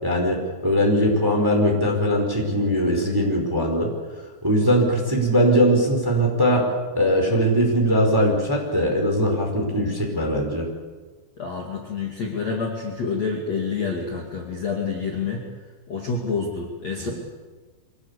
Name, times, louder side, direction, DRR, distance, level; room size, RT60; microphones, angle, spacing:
voice 1, 0.0-3.9 4.4-6.7 6.9-10.6 17.0-17.1, equal, 5° right, 1 dB, 3.9 m, -20 dB
voice 2, 11.4-15.4 15.9-17.1, left 5 dB, 40° left, -1 dB, 2.9 m, -28 dB
24.5 x 19.5 x 8.3 m, 1.4 s
omnidirectional pair, 5.7 m